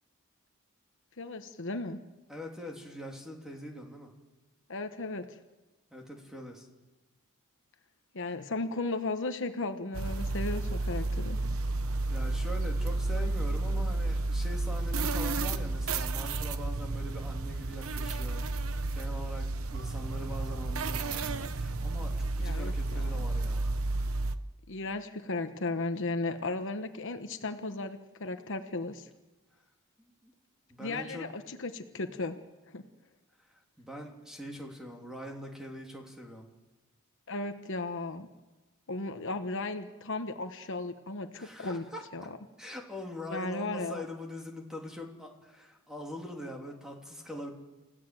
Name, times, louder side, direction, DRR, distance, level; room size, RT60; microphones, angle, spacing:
voice 1, 1.2-2.0 4.7-5.4 8.1-11.4 22.4-23.3 24.7-29.1 30.8-32.4 32.7-32.8 37.3-38.3 38.9-41.8 42.1-42.2 43.3-44.0, left 2 dB, 60° left, 8 dB, 1.2 m, -35 dB
voice 2, 2.3-4.1 5.9-6.7 12.1-18.4 18.9-23.8 30.0-30.3 30.7-31.3 33.5-36.5 41.4-42.0 42.6-47.5, left 1 dB, 5° right, 0 dB, 3.2 m, -43 dB
sound 1, 9.9-24.3, right 2 dB, 70° right, 1.0 m, -31 dB
29.0 x 16.0 x 7.8 m, 1.1 s
head